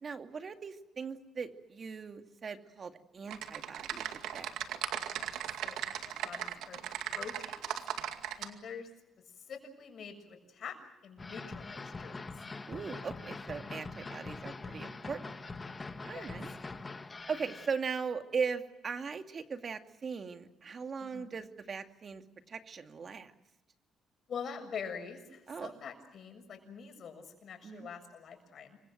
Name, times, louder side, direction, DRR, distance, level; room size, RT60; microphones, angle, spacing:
voice 1, 0.0-4.1 4.3-4.8 12.7-15.5 16.0-16.5 17.3-22.2 22.5-23.3 25.5-25.7 27.6-27.9, right 5 dB, 45° right, 6 dB, 2.4 m, -39 dB
Typing, 3.3-8.5, right 10 dB, 90° right, 2.2 m, -37 dB
voice 2, 5.6-6.8 7.1-7.8 8.4-8.9 9.4-10.8 11.0-12.2 16.1-16.3 21.0-21.3 24.3-28.8, left 6 dB, 60° left, 6 dB, 6.9 m, -45 dB
sound 1, 11.2-17.7, left 3 dB, 25° left, 1.9 m, -43 dB
28.5 x 24.0 x 7.8 m, 0.90 s
cardioid pair, 90°, 0 cm